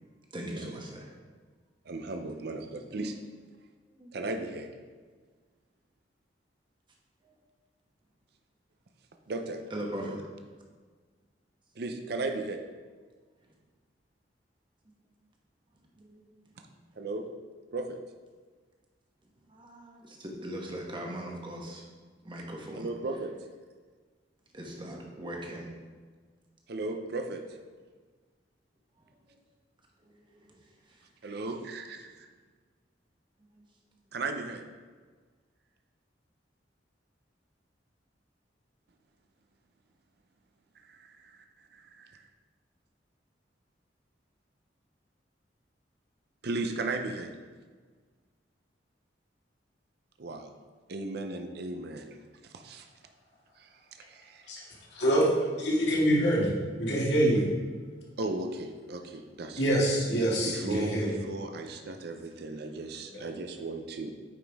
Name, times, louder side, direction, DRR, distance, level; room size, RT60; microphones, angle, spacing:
voice 1, 0.3-1.1 2.2-2.3 4.0-4.1 7.2-7.3 9.7-10.2 16.0-16.2 19.5-21.8 22.2-22.9 24.5-25.7 30.0-30.6 33.5-33.6, right 1 dB, 25° right, 0 dB, 1.1 m, -40 dB
voice 2, 1.9-3.1 4.1-4.7 9.3-9.6 11.8-12.6 17.0-17.3 17.7-18.0 22.7-23.3 26.7-27.4 31.2-32.3 34.1-34.6 40.9-41.4 41.7-42.2 46.4-47.3 50.2-50.5 50.9-52.2 52.4-52.9 53.6-54.5 58.2-59.8 60.4-64.1, right 2 dB, 60° right, 5 dB, 0.6 m, -36 dB
voice 3, 54.9-55.2 55.6-56.5 56.8-57.5 59.6-61.1, right 1 dB, 65° left, -4 dB, 2.0 m, -25 dB
9.1 x 5.1 x 3.5 m, 1.5 s
head